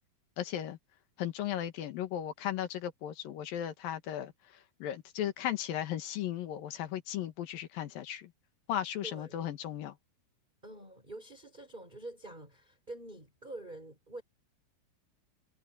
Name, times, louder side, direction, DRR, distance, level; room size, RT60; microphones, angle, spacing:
voice 1, 0.4-0.8 1.2-8.3 8.7-10.0, left 11 dB, 70° left, 3.2 m, -36 dB
voice 2, 9.0-9.5 10.6-14.2, right 2 dB, 10° right, 6.7 m, -46 dB
omnidirectional pair, 4.2 m